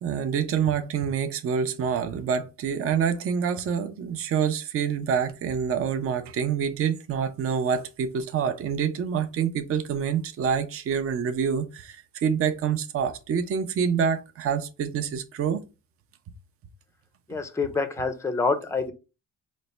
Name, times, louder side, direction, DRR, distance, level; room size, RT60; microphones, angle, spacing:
voice 1, 0.0-15.6 17.3-17.4, right 7 dB, 40° right, 0.5 m, -27 dB
voice 2, 17.3-18.9, left 4 dB, 10° left, 0.5 m, -26 dB
4.0 x 2.1 x 3.2 m
cardioid pair, 95°, 35 cm